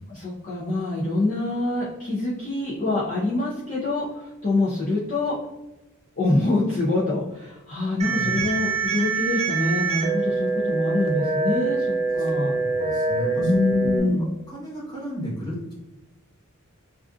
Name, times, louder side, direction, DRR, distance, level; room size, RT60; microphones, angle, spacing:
voice 1, 0.1-5.4 6.2-11.9 12.1-12.5 13.4-14.2, left 2 dB, 35° left, -7 dB, 0.5 m, -25 dB
voice 2, 8.0-8.5 12.2-13.5 13.8-14.1 14.5-15.7, equal, 20° left, -7 dB, 1.0 m, -34 dB
sound 1, 8.0-14.0, right 4 dB, 30° right, 0.4 m, -25 dB
2.4 x 2.4 x 2.3 m, 0.99 s
head